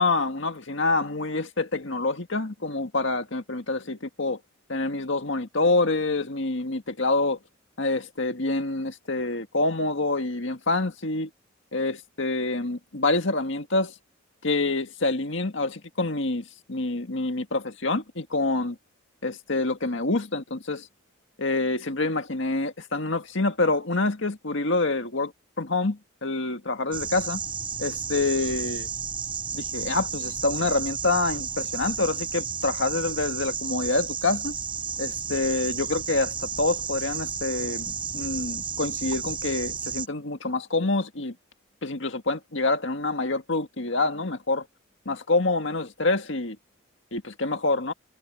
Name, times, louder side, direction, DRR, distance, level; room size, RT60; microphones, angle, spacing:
voice 1, 0.0-4.4 4.7-7.4 7.8-11.3 11.7-13.9 14.4-18.8 19.2-20.9 21.4-25.3 25.6-27.4 27.8-28.9 29.5-34.5 35.0-41.3 41.8-44.6 45.1-46.6 47.1-47.9, left 2 dB, 65° left, 1.8 m, -26 dB
sound 1, 26.9-40.1, right 7 dB, 25° right, 6.9 m, -32 dB
head